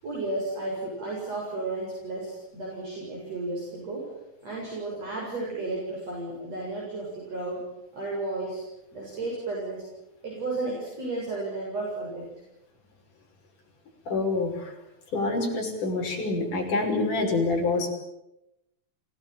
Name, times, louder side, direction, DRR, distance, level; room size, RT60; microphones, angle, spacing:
voice 1, 0.0-4.1 4.4-7.6 7.9-8.6 8.9-9.8 10.2-12.3, right 2 dB, 45° right, -3 dB, 8.4 m, -33 dB
voice 2, 14.1-14.7 15.1-17.9, left 3 dB, 55° left, 1 dB, 7.4 m, -26 dB
28.5 x 18.0 x 9.2 m, 0.87 s
omnidirectional pair, 4.3 m